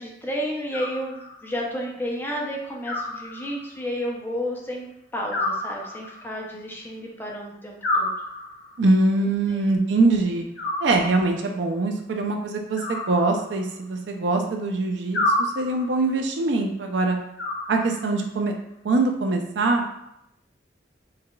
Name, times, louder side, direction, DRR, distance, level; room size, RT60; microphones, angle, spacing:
voice 1, 0.0-4.9 5.1-8.1 9.5-9.7, equal, 10° left, -2 dB, 0.5 m, -31 dB
Animal, 0.7-1.6 2.8-3.9 5.3-6.4 7.8-8.8 10.6-11.5 12.8-13.9 15.1-16.1 17.4-18.3, left 2 dB, 75° left, 0.9 m, -29 dB
voice 2, 8.8-10.5 10.8-17.2 17.7-18.5 18.8-19.9, right 2 dB, 70° right, 3 dB, 0.4 m, -23 dB
4.7 x 2.3 x 2.2 m, 0.80 s
head